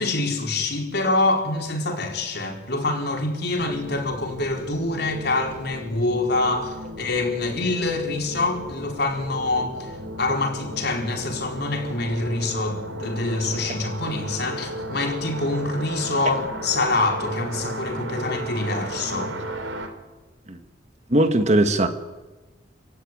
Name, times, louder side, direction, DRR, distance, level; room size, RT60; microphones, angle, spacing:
voice 1, 0.0-19.3, left 2 dB, 55° left, 4.5 m, -25 dB
sound 1, 3.6-19.9, right 1 dB, 85° right, 3.3 m, -35 dB
voice 2, 21.1-21.9, right 1 dB, 35° right, 1.7 m, -19 dB
28.0 x 16.5 x 9.7 m
head